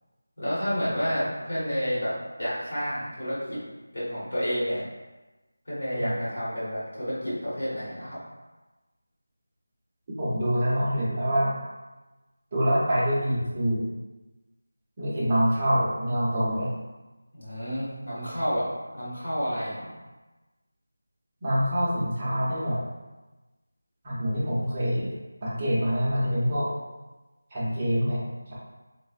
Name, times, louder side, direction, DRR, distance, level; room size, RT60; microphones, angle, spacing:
voice 1, 0.4-3.6 3.9-4.8 5.7-8.2 17.3-19.9, equal, 65° left, -8 dB, 1.4 m, -30 dB
voice 2, 10.2-11.5 12.5-13.9 15.0-16.7 21.4-22.8 24.0-25.1 25.4-26.7 27.5-28.5, equal, 20° right, -9 dB, 0.7 m, -25 dB
3.2 x 2.0 x 2.4 m, 1.1 s
figure-of-eight pair, 175°, 0 cm